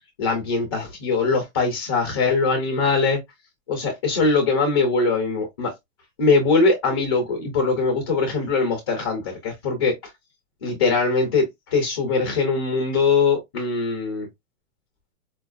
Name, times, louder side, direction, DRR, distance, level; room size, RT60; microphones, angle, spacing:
voice 1, 0.2-3.2 3.7-5.7 6.2-10.1 10.6-14.3, left 4 dB, 20° left, 0.3 m, -22 dB
4.3 x 2.3 x 2.3 m
supercardioid pair, 160°, 41 cm